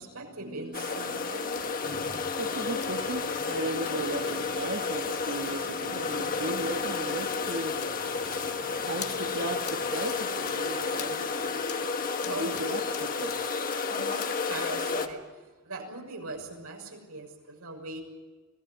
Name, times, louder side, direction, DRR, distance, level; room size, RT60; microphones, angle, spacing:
voice 1, 0.0-2.5 12.2-12.6 13.8-18.0, right 2 dB, 85° right, 6.4 m, -41 dB
sound 1, 0.7-15.1, left 4 dB, 40° left, 1.6 m, -31 dB
sound 2, 1.5-1.7 2.1-2.3 2.8-3.0 3.5-4.0 4.3-4.4 5.1-5.2 5.4-5.5 5.8-5.9 6.2-6.3 6.6-6.7 6.9-7.1 7.3-7.5 7.8-7.9 8.3-8.7 9.0-9.2 9.7-9.8 10.1-10.2 10.5-10.6 11.0-11.1 11.7-11.8 12.2-12.7 12.9-13.4 13.7-13.8 14.2-14.3 14.7-14.8, left 10 dB, 85° left, 1.7 m, -43 dB
voice 2, 1.9-11.6 12.0-13.4 14.1-14.2, right 2 dB, 55° right, 1.5 m, -37 dB
25.5 x 18.5 x 9.5 m
head